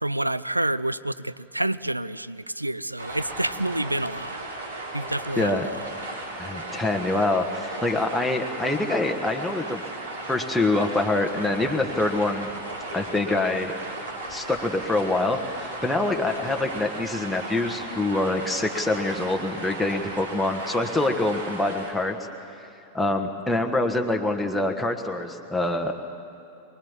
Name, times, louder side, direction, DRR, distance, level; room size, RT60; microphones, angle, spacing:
voice 1, 0.0-4.4 4.9-5.7, right 1 dB, 85° right, 18 dB, 0.4 m, -28 dB
sound 1, 3.0-21.9, right 2 dB, 70° right, 3.8 m, -36 dB
voice 2, 5.4-5.7 6.4-9.8 10.3-12.5 12.9-13.7 14.3-22.2 22.9-26.0, left 2 dB, 5° left, 1 dB, 1.5 m, -25 dB
23.5 x 21.5 x 7.3 m, 2.8 s
figure-of-eight pair, 90°, 0 cm